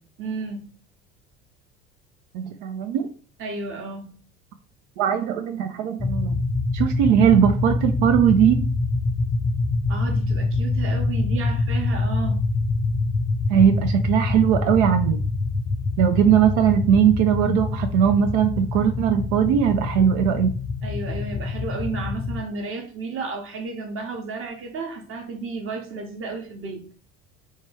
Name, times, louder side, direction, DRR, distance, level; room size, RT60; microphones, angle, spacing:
voice 1, 0.2-0.7 3.4-4.2 9.9-12.4 20.8-26.8, right 4 dB, 40° right, 0.9 m, -32 dB
voice 2, 2.3-3.1 5.0-6.4 6.7-8.6 13.5-15.2 16.0-20.5, right 9 dB, 60° right, 0.5 m, -19 dB
sound 1, 6.0-22.4, left 3 dB, 10° left, 0.5 m, -25 dB
3.1 x 2.2 x 3.2 m
hypercardioid pair, 70°, 33 cm